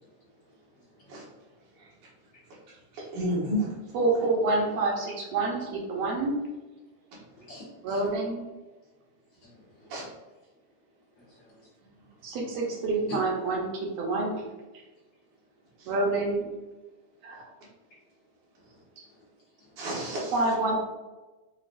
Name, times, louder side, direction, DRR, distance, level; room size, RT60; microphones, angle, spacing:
voice 1, 3.1-3.7 7.1-7.2 9.9-10.0 11.8-11.9 15.8-15.9 19.8-20.3, equal, 85° right, -6 dB, 2.8 m, -31 dB
voice 2, 3.9-6.3 7.8-8.5 12.2-14.4 15.9-16.4 17.2-17.5 19.0-19.1 20.3-20.7, right 2 dB, 70° right, -1 dB, 1.7 m, -27 dB
voice 3, 7.4-8.0 9.4-9.9 11.2-11.6 13.1-13.2 19.6-19.8, left 4 dB, 55° left, -7 dB, 1.3 m, -44 dB
6.0 x 2.3 x 2.5 m, 1.1 s
omnidirectional pair, 3.4 m